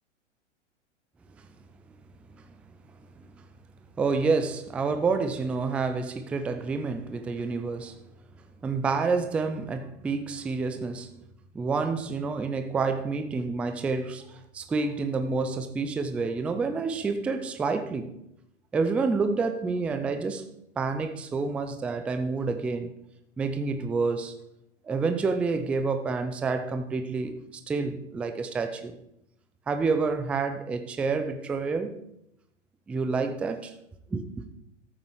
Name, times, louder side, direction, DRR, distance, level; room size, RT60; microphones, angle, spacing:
voice 1, 4.0-7.9 8.6-11.1 11.5-18.1 18.7-20.5 20.8-22.9 23.4-24.3 24.8-27.4 27.7-29.0 29.7-31.9 32.9-33.7 34.1-34.2, right 4 dB, 5° right, 0.3 m, -28 dB
13.5 x 7.8 x 4.8 m
hypercardioid pair, 110°, 37 cm